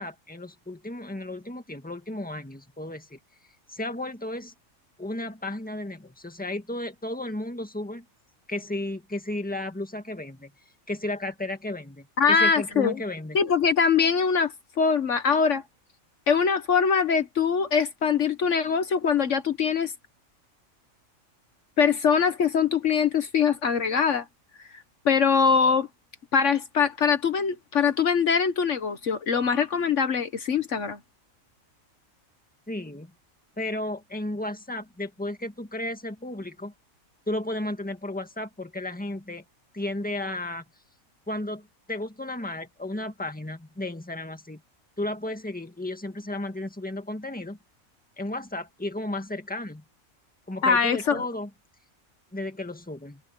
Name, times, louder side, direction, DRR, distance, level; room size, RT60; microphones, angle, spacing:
voice 1, 0.0-3.2 3.7-4.5 5.0-8.0 8.5-10.5 10.9-13.4 32.7-33.1 33.6-36.7 37.3-39.4 39.7-40.6 41.3-44.6 45.0-47.6 48.2-49.8 50.5-51.5 52.3-53.2, left 1 dB, 5° left, 1.8 m, -33 dB
voice 2, 12.2-13.0 13.3-15.6 16.3-19.9 21.8-24.2 25.0-25.9 26.3-31.0 50.6-51.2, left 6 dB, 65° left, 1.5 m, -23 dB
omnidirectional pair, 1.4 m